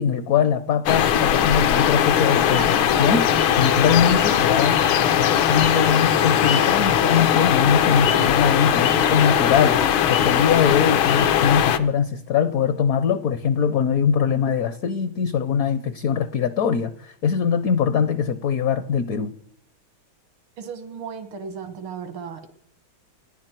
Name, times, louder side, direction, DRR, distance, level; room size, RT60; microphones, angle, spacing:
voice 1, 0.0-4.8 5.1-19.3, left 7 dB, 60° left, 1.0 m, -22 dB
sound 1, 0.9-11.8, left 9 dB, 80° left, 1.8 m, -19 dB
sound 2, 1.7-9.3, right 2 dB, 30° right, 0.4 m, -38 dB
voice 2, 20.6-22.5, right 6 dB, 90° right, 2.4 m, -35 dB
30.0 x 10.5 x 4.5 m
omnidirectional pair, 2.2 m